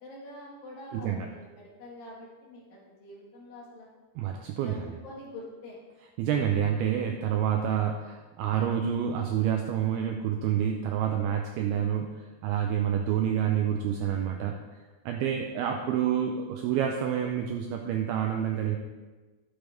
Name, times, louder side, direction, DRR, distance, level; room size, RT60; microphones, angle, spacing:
voice 1, 0.0-3.9 4.6-5.8, left 1 dB, 60° left, -3 dB, 2.9 m, -46 dB
voice 2, 0.9-1.3 4.2-5.0 6.2-12.1 12.4-14.6 15.1-18.8, right 9 dB, 85° right, 3 dB, 2.2 m, -28 dB
11.0 x 7.6 x 3.4 m, 1.3 s
omnidirectional pair, 5.1 m